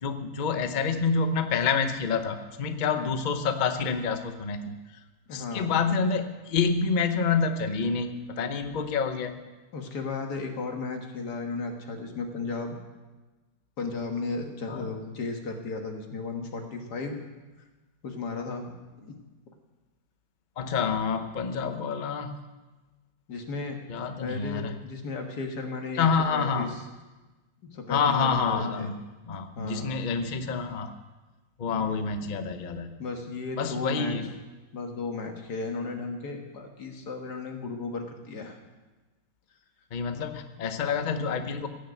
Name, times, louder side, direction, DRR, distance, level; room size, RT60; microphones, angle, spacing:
voice 1, 0.0-4.8 5.3-9.3 14.7-14.9 20.6-22.3 23.9-24.7 26.0-26.7 27.9-29.0 29.3-30.9 31.6-32.9 33.6-34.3 39.9-41.7, left 5 dB, 80° left, 7 dB, 0.4 m, -27 dB
voice 2, 5.3-5.7 9.7-12.8 13.8-17.2 18.0-18.6 19.0-19.1 23.3-23.8 24.2-26.8 27.6-28.9 29.6-29.9 31.7-32.1 33.0-34.2 34.7-38.6, left 3 dB, 55° left, 3 dB, 2.0 m, -35 dB
16.5 x 6.5 x 8.1 m, 1.2 s
omnidirectional pair, 2.1 m